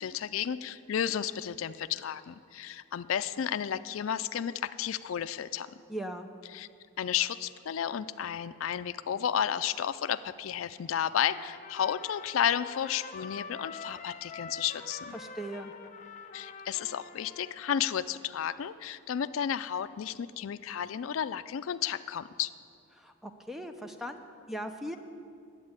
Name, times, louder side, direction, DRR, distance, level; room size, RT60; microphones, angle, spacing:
voice 1, 0.0-5.7 6.5-6.7 7.0-15.1 16.3-22.5, left 9 dB, 80° left, 13 dB, 0.4 m, -32 dB
voice 2, 5.9-6.3 15.1-15.7 22.9-25.0, equal, ahead, 6 dB, 0.6 m, -39 dB
Trumpet, 11.1-17.9, left 4 dB, 35° left, 0.8 m, -45 dB
11.0 x 8.2 x 9.5 m, 2.3 s
head